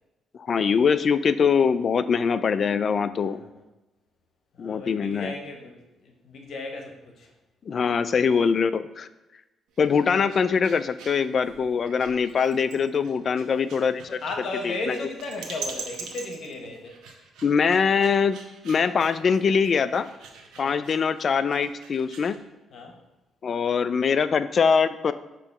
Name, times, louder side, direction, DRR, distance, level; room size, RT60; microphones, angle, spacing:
voice 1, 0.5-3.4 4.6-5.3 7.7-9.1 9.8-14.2 14.6-15.0 17.4-18.4 18.6-20.1 20.6-22.4 23.4-25.1, left 6 dB, 50° left, 13 dB, 0.3 m, -23 dB
voice 2, 3.2-3.6 4.5-7.3 11.8-12.2 14.1-16.9 20.6-20.8 22.7-23.0, left 2 dB, 65° left, 3 dB, 1.0 m, -36 dB
sound 1, 9.7-22.4, right 5 dB, 85° right, 1.0 m, -43 dB
6.8 x 3.0 x 5.4 m, 1.0 s
cardioid pair, 90°, 0 cm